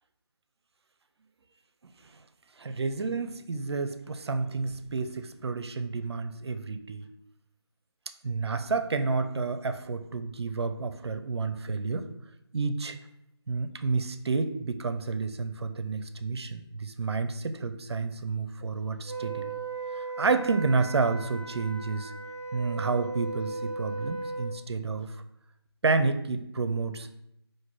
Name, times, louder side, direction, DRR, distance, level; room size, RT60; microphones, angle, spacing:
voice 1, 2.6-7.0 8.2-12.1 12.5-13.0 13.5-19.6 19.9-22.1 22.5-25.1 25.8-27.1, right 4 dB, 70° right, 9 dB, 0.4 m, -30 dB
Wind instrument woodwind instrument, 19.0-24.5, right 3 dB, 5° left, 0.6 m, -37 dB
3.7 x 2.6 x 4.5 m, 0.80 s
figure-of-eight pair, 165°, 14 cm